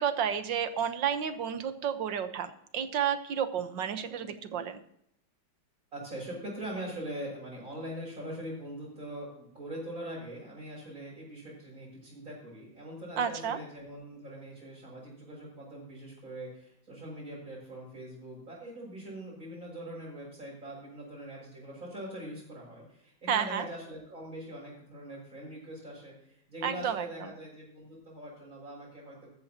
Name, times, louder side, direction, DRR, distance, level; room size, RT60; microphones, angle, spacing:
voice 1, 0.0-4.8 13.2-13.6 23.3-23.7 26.6-27.1, right 8 dB, 65° right, 9 dB, 1.7 m, -31 dB
voice 2, 5.9-29.3, right 1 dB, 40° right, -9 dB, 6.8 m, -42 dB
14.0 x 13.5 x 2.9 m, 0.72 s
omnidirectional pair, 2.2 m